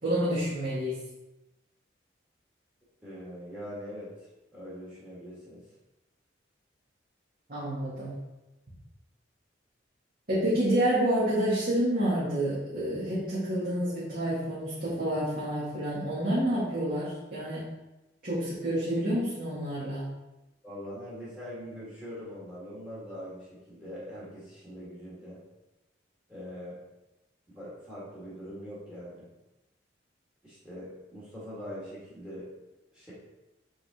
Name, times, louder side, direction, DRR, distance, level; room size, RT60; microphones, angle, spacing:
voice 1, 0.0-1.0 7.5-8.1 10.3-17.6 18.2-20.1, right 1 dB, 50° right, -10 dB, 2.1 m, -28 dB
voice 2, 3.0-5.6 20.6-25.4 26.3-26.8 27.5-29.2 30.4-32.5 32.9-33.1, equal, 5° right, -8 dB, 2.0 m, -42 dB
8.5 x 4.0 x 3.8 m, 1.0 s
head